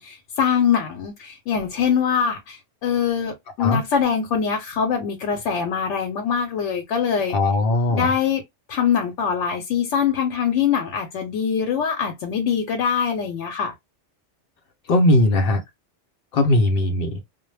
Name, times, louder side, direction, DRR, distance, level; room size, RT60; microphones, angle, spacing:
voice 1, 0.0-7.4 7.9-8.4 8.7-13.7, left 7 dB, 85° left, 0.9 m, -23 dB
voice 2, 7.3-8.1 14.9-15.6 16.3-17.2, left 1 dB, 60° left, 0.7 m, -19 dB
2.1 x 2.1 x 3.1 m
omnidirectional pair, 1.2 m